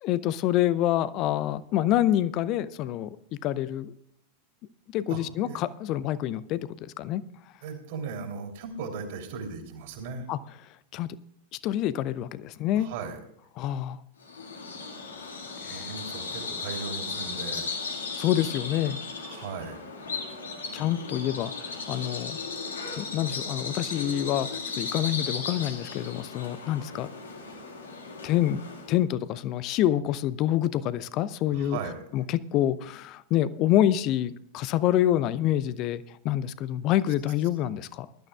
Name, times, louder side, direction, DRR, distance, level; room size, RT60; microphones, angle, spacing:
voice 1, 0.0-3.2 3.4-3.9 4.9-7.2 10.3-10.4 10.9-11.1 11.6-12.9 13.6-14.0 15.6-15.9 18.2-19.0 20.7-22.4 23.0-24.5 24.7-27.1 28.2-28.6 28.9-31.8 32.1-38.1, left 12 dB, 40° left, 17 dB, 0.6 m, -27 dB
voice 2, 5.1-5.6 7.6-10.3 12.7-13.2 15.7-17.7 19.2-19.8 31.5-32.0, right 5 dB, 50° right, 3 dB, 3.1 m, -37 dB
Bird vocalization bird call bird song, 14.2-29.0, left 4 dB, 70° left, 1.8 m, -36 dB
21.5 x 12.0 x 2.3 m, 0.74 s
figure-of-eight pair, 90°, 0 cm